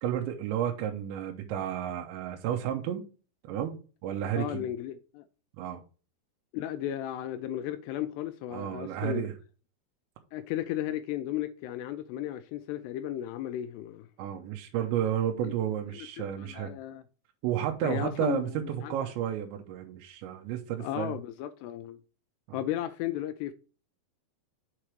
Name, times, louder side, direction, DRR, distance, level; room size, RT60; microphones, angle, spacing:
voice 1, 0.0-3.1 3.4-4.7 5.6-5.8 8.5-9.4 14.2-16.7 17.4-21.1 22.5-22.6, right 10 dB, 85° right, 3.1 m, -32 dB
voice 2, 4.4-5.2 6.5-9.2 10.3-14.1 15.4-15.5 15.9-17.0 17.8-18.9 20.8-22.0 22.5-23.5, left 12 dB, 85° left, 2.5 m, -35 dB
7.1 x 4.9 x 4.5 m
omnidirectional pair, 5.1 m